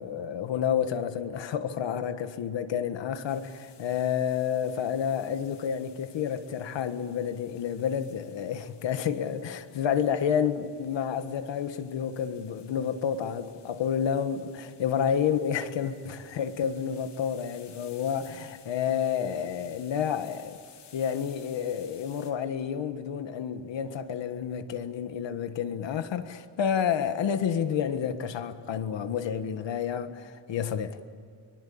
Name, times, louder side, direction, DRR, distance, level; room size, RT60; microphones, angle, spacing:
voice 1, 0.0-20.6 20.9-31.0, left 8 dB, 90° left, 1.7 m, -30 dB
sound 1, 3.3-22.3, left 7 dB, 70° left, 3.1 m, -57 dB
24.0 x 23.5 x 8.7 m
wide cardioid pair, 180°, 43 cm